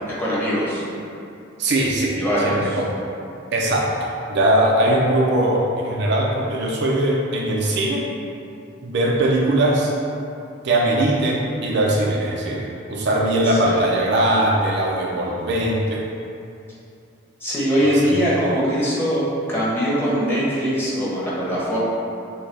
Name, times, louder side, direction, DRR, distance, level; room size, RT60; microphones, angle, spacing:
voice 1, 0.2-0.8 2.1-2.8 13.6-13.9 17.4-21.8, equal, 10° left, -8 dB, 1.0 m, -21 dB
voice 2, 1.6-2.2 2.4-2.9 3.5-8.1 8.8-9.9 10.6-16.1 17.8-18.1, right 1 dB, 60° right, -2 dB, 0.6 m, -20 dB
6.3 x 2.3 x 3.3 m, 2.6 s
head